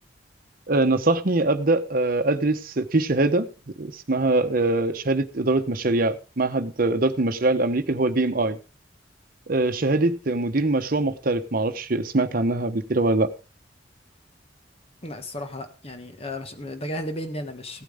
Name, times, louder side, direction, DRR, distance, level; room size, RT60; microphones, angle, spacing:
voice 1, 0.7-3.5 3.8-8.6 9.5-13.3, right 2 dB, 50° right, 1.0 m, -23 dB
voice 2, 15.0-17.8, left 1 dB, 35° left, 1.5 m, -34 dB
16.5 x 9.1 x 3.6 m
head